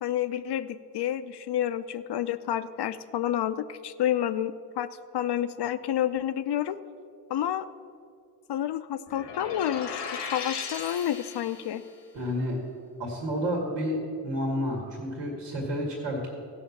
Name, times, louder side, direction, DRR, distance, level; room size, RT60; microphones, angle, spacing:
voice 1, 0.0-4.9 5.1-6.8 7.3-7.6 8.5-11.8, left 11 dB, 65° left, 13 dB, 0.7 m, -29 dB
sound 1, 9.1-11.9, left 5 dB, 85° left, 1.3 m, -37 dB
voice 2, 12.1-12.6 13.0-14.0 14.2-16.3, equal, 80° right, -1 dB, 2.1 m, -30 dB
14.5 x 5.7 x 7.1 m, 2.3 s
supercardioid pair, 50°, 42 cm